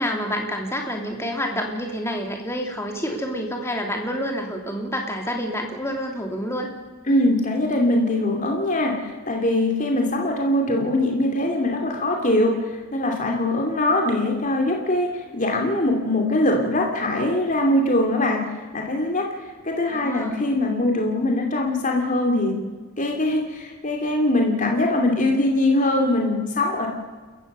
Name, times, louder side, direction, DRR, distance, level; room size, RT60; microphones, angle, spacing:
voice 1, 0.0-6.7 19.9-20.4, equal, 10° left, 2 dB, 2.9 m, -28 dB
voice 2, 7.1-22.6 23.0-26.9, left 1 dB, 35° left, 1 dB, 2.9 m, -22 dB
29.0 x 15.0 x 6.8 m, 1.4 s
head